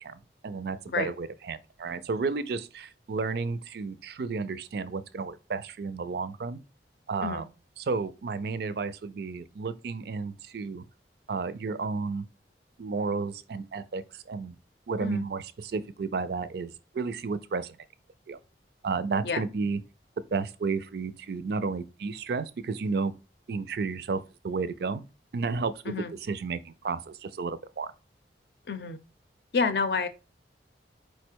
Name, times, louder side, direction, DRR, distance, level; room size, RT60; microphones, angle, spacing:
voice 1, 0.0-6.6 7.1-7.4 7.8-10.8 11.3-12.2 12.8-14.6 14.9-17.8 18.3-18.4 18.8-19.8 20.3-23.1 23.5-25.0 25.3-27.9, right 4 dB, 60° right, 0.4 m, -32 dB
voice 2, 28.7-29.0 29.5-30.1, left 5 dB, 60° left, 0.5 m, -28 dB
4.7 x 2.2 x 4.4 m
head